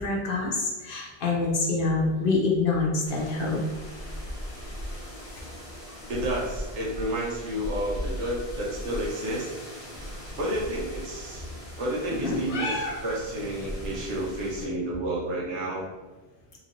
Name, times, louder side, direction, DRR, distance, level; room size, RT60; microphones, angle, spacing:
voice 1, 0.0-3.6 5.4-5.5 12.1-13.0, left 3 dB, 55° left, -2 dB, 0.8 m, -26 dB
sound 1, 3.0-14.7, equal, 30° left, 1.0 m, -39 dB
voice 2, 6.1-9.5 10.4-11.4 11.8-15.9, right 1 dB, 85° right, -4 dB, 1.2 m, -30 dB
3.1 x 3.1 x 2.6 m, 1.2 s
omnidirectional pair, 1.2 m